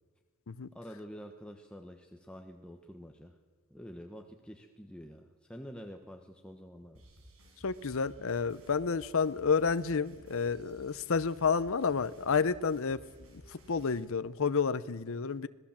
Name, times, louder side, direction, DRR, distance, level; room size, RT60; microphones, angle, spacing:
voice 1, 0.7-3.4 3.7-7.0, equal, 5° left, 1.2 m, -48 dB
sound 1, 6.9-14.0, right 1 dB, 75° right, 6.4 m, -57 dB
voice 2, 7.6-13.0 13.7-15.5, left 5 dB, 70° left, 0.7 m, -30 dB
26.5 x 18.0 x 7.4 m
head